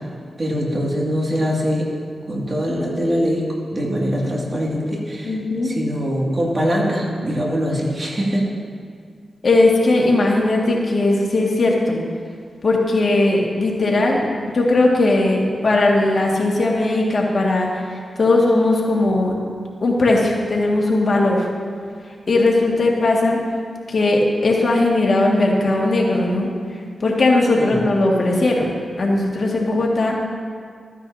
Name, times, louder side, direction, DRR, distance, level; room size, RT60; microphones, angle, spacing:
voice 1, 0.4-1.9 2.3-5.4 5.6-8.5 27.6-27.8, equal, 45° right, -3 dB, 2.3 m, -22 dB
voice 2, 5.2-5.7 9.4-12.0 12.6-14.2 14.5-19.3 19.8-21.5 22.3-23.4 23.9-26.5 27.0-30.1, left 2 dB, 55° left, -2 dB, 2.0 m, -18 dB
14.0 x 9.8 x 2.8 m, 2.1 s
cardioid pair, 60°, 0 cm